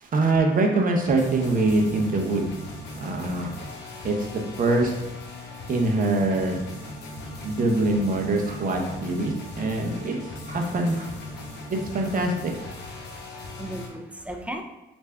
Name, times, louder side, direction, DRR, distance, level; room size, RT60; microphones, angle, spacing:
voice 1, 0.0-2.5 3.0-3.5 4.0-4.9 5.7-6.6 7.4-10.1 10.5-11.1 11.9-12.5, right 2 dB, 45° right, 2 dB, 0.7 m, -24 dB
sound 1, 1.0-13.9, left 2 dB, 60° left, 0.8 m, -38 dB
voice 2, 11.9-12.3 12.6-13.0 13.6-14.6, right 1 dB, 5° right, 3 dB, 0.3 m, -38 dB
3.3 x 2.5 x 3.3 m, 0.99 s
cardioid pair, 90°, 20 cm